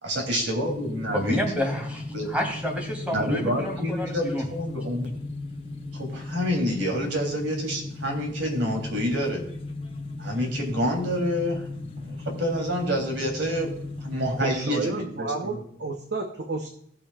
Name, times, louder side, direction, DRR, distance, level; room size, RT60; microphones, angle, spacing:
voice 1, 0.0-1.4 2.1-2.3 3.1-5.1 5.9-9.4 10.2-11.7 12.0-13.7 14.0-15.6, equal, 85° right, 2 dB, 3.3 m, -28 dB
sound 1, 0.6-14.5, left 2 dB, 30° left, 1.2 m, -36 dB
voice 2, 1.1-4.4, left 1 dB, 5° right, 0 dB, 2.9 m, -29 dB
voice 3, 14.3-16.7, right 3 dB, 60° right, 3 dB, 1.0 m, -31 dB
18.5 x 7.0 x 2.4 m, 0.72 s
head